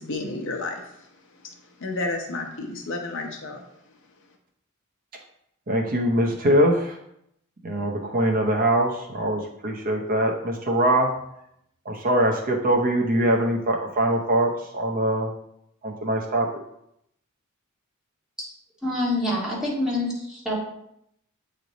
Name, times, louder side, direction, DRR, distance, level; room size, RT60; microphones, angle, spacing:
voice 1, 0.0-3.6, left 2 dB, 60° left, 3 dB, 0.8 m, -32 dB
voice 2, 5.7-7.0 7.6-11.1 11.9-15.3 15.8-16.5, right 1 dB, 40° right, 1 dB, 0.8 m, -22 dB
voice 3, 18.8-20.6, left 1 dB, 5° right, -7 dB, 2.0 m, -26 dB
8.2 x 3.2 x 3.9 m, 0.76 s
head